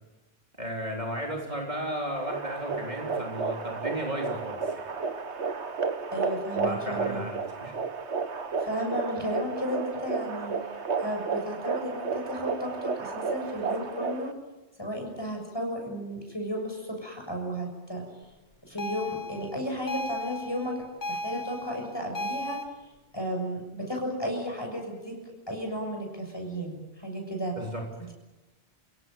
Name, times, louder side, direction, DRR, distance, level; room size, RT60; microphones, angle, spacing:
voice 1, 0.6-4.9 6.6-7.8 27.6-27.8, right 1 dB, 40° right, 0 dB, 3.7 m, -34 dB
sound 1, 2.1-14.3, right 5 dB, 85° right, 1.7 m, -32 dB
voice 2, 6.1-7.2 8.6-10.5 11.0-14.3 14.8-18.1 18.6-20.7 21.1-22.6 23.1-25.2 25.5-27.6, equal, 20° left, 1 dB, 7.0 m, -33 dB
sound 2, 18.8-22.6, left 1 dB, 45° left, 1.5 m, -35 dB
30.0 x 17.0 x 9.2 m, 1.1 s
omnidirectional pair, 1.1 m